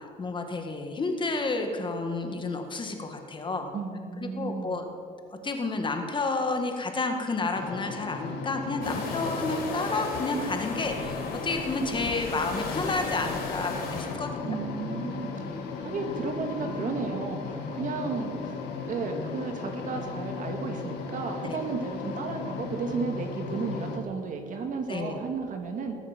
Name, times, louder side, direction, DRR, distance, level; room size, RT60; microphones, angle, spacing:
voice 1, 0.0-3.7 4.2-4.9 5.4-14.6 21.4-21.6 24.9-25.2, left 3 dB, 30° left, 4 dB, 1.8 m, -30 dB
voice 2, 3.7-4.8 14.4-18.6 18.8-26.0, right 4 dB, 50° right, 4 dB, 2.1 m, -33 dB
sound 1, 7.5-24.0, left 4 dB, 90° left, 1.8 m, -36 dB
sound 2, 8.8-14.1, left 3 dB, 70° left, 4.7 m, -36 dB
19.0 x 8.1 x 7.4 m, 2.3 s
cardioid pair, 110°, 17 cm